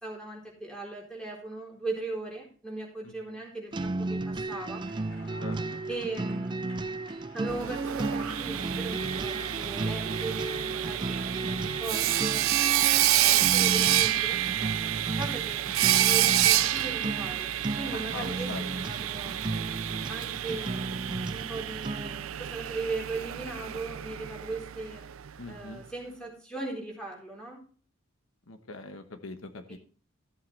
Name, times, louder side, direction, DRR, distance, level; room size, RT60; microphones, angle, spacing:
voice 1, 0.0-4.8 5.9-6.6 7.3-12.5 12.8-14.4 15.2-15.7 16.0-19.4 20.1-21.0 21.3-25.0 25.5-27.6 29.7-29.8, right 3 dB, 5° left, -2 dB, 4.1 m, -38 dB
voice 2, 3.0-3.4 5.4-5.9 13.3-13.5 17.9-18.7 25.4-25.8 28.5-29.8, left 3 dB, 85° left, 7 dB, 1.2 m, -42 dB
sound 1, 3.7-22.3, right 2 dB, 25° right, 0.4 m, -34 dB
sound 2, 4.5-9.8, left 1 dB, 65° left, 5.6 m, -53 dB
Sawing, 7.5-25.3, right 13 dB, 90° right, 0.5 m, -28 dB
14.5 x 7.9 x 3.3 m, 0.40 s
head